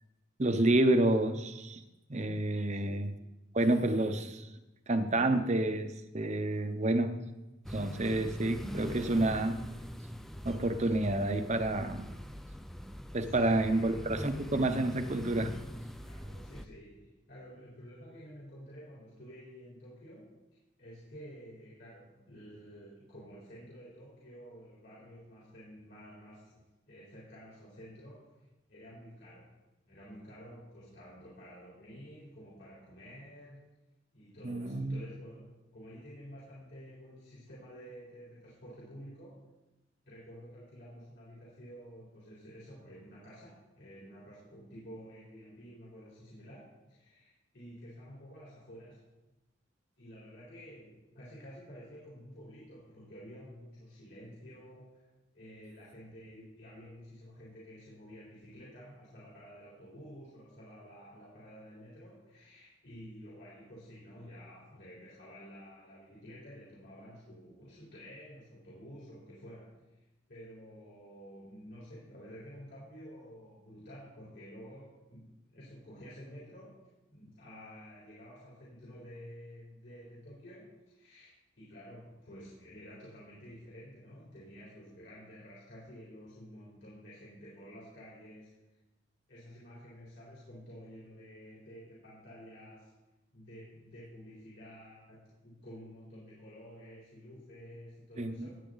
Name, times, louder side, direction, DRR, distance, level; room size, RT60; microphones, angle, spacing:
voice 1, 0.4-1.8 2.1-3.1 3.5-4.5 4.9-7.1 7.7-9.6 10.4-12.1 13.1-15.5 34.4-35.0 98.2-98.5, right 1 dB, 35° right, 8 dB, 0.9 m, -29 dB
voice 2, 2.5-3.0 13.0-14.3 16.0-20.4 20.8-33.6 34.1-39.5 40.0-49.0 50.0-55.1 55.3-76.8 77.1-88.5 89.3-92.9 93.3-98.6, equal, 60° left, -7 dB, 4.0 m, -51 dB
sound 1, 7.6-16.6, equal, ahead, 0.5 m, -43 dB
17.0 x 9.0 x 4.0 m, 1.0 s
head